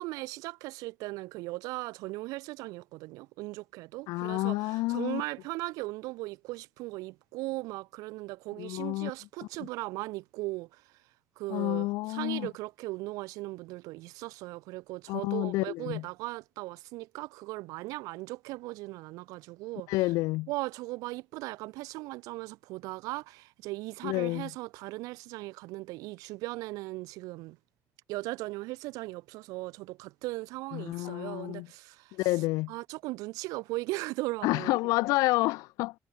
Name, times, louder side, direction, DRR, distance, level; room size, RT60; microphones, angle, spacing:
voice 1, 0.0-10.8 11.4-19.9 20.5-27.6 28.1-32.2 32.7-34.8, right 21 dB, 90° right, 2.5 m, -38 dB
voice 2, 4.1-5.2 8.6-9.1 11.5-12.5 15.1-16.0 19.9-20.5 24.0-24.5 30.7-31.7 32.1-32.7 34.4-35.9, left 21 dB, 90° left, 3.2 m, -29 dB
cardioid pair, 85°, 6 cm